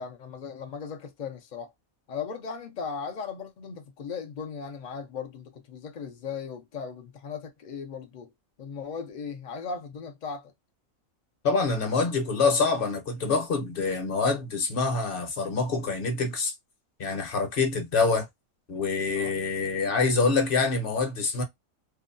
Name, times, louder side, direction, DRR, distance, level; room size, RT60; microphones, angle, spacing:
voice 1, 0.0-1.7 2.1-8.3 8.6-10.5 19.2-19.3, left 6 dB, 75° left, 0.4 m, -37 dB
voice 2, 11.4-16.5 17.0-18.2 18.7-21.4, left 4 dB, 50° left, 0.8 m, -26 dB
2.6 x 2.2 x 2.5 m
omnidirectional pair, 1.5 m